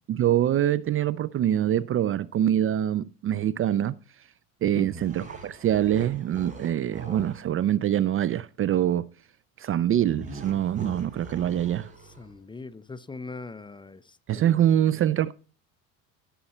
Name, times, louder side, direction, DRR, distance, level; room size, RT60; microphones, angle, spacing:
voice 1, 0.1-4.0 4.6-9.0 9.6-11.9 14.3-15.3, right 11 dB, 35° right, 0.4 m, -24 dB
sound 1, 4.8-7.5 10.1-12.4, right 2 dB, 20° right, 4.2 m, -42 dB
voice 2, 12.2-14.8, left 3 dB, 10° left, 0.6 m, -41 dB
16.0 x 6.9 x 4.2 m
cardioid pair, 120°, 38 cm